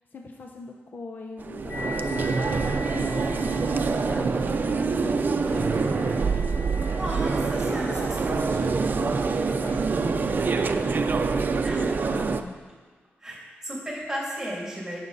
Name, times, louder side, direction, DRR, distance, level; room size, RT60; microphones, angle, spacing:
voice 1, 0.1-6.0 7.7-12.5, left 3 dB, 50° left, 2 dB, 0.9 m, -41 dB
sound 1, 1.4-12.4, right 4 dB, 45° right, 0.6 m, -25 dB
sound 2, 1.7-11.2, left 3 dB, 70° left, 1.5 m, -40 dB
voice 2, 6.9-7.9 8.2-8.4 11.6-11.8 13.2-15.0, equal, 10° right, -5 dB, 2.9 m, -34 dB
17.0 x 7.1 x 4.1 m, 1.5 s
wide cardioid pair, 105°, 4 cm